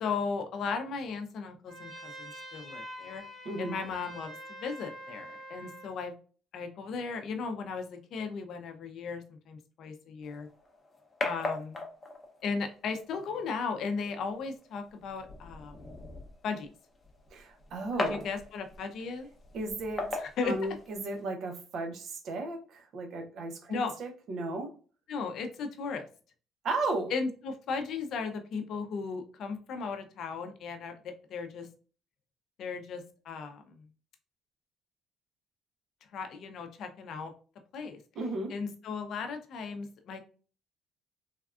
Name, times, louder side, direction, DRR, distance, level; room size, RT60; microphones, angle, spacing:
voice 1, 0.0-3.2 3.6-6.1 6.5-10.5 11.2-11.8 12.4-15.9 16.4-16.7 18.0-19.3 20.2-20.6 23.7-24.0 25.1-26.1 27.1-31.7 32.6-33.6 36.1-37.3 37.7-38.0 38.5-40.2, left 5 dB, 55° left, 7 dB, 0.5 m, -36 dB
Trumpet, 1.7-5.9, equal, 15° right, 0.9 m, -45 dB
voice 2, 3.4-3.8 17.3-18.3 19.5-20.1 20.4-24.7 26.6-27.1 38.1-38.5, right 2 dB, 55° right, 4 dB, 0.6 m, -35 dB
sound 1, 10.2-21.2, left 2 dB, 20° left, 0.7 m, -40 dB
3.4 x 2.2 x 2.4 m, 0.38 s
cardioid pair, 145°, 0 cm